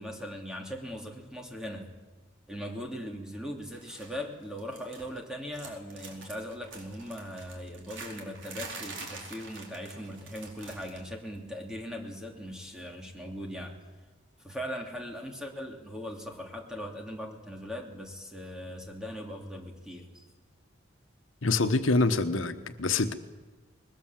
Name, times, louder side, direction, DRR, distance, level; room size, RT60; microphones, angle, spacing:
voice 1, 0.0-1.9 2.5-13.7 14.4-20.3, equal, 5° right, 1 dB, 2.8 m, -39 dB
sound 1, 3.7-4.2 4.4-5.2 5.5-11.1 11.4-11.6 12.7-12.8, right 3 dB, 70° right, 4.5 m, -45 dB
voice 2, 21.4-23.1, left 3 dB, 85° left, 8 dB, 1.2 m, -26 dB
21.5 x 21.0 x 7.4 m, 1.2 s
head